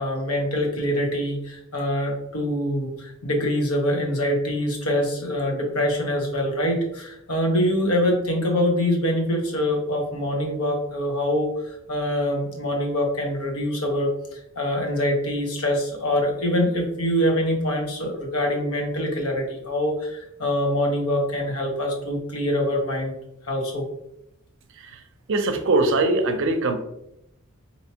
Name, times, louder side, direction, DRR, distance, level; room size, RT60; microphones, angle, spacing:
voice 1, 0.0-23.1 23.5-23.8, left 1 dB, 90° left, 1 dB, 1.0 m, -24 dB
voice 2, 25.3-26.7, right 2 dB, 60° right, 7 dB, 0.5 m, -21 dB
4.4 x 2.8 x 2.8 m, 0.82 s
head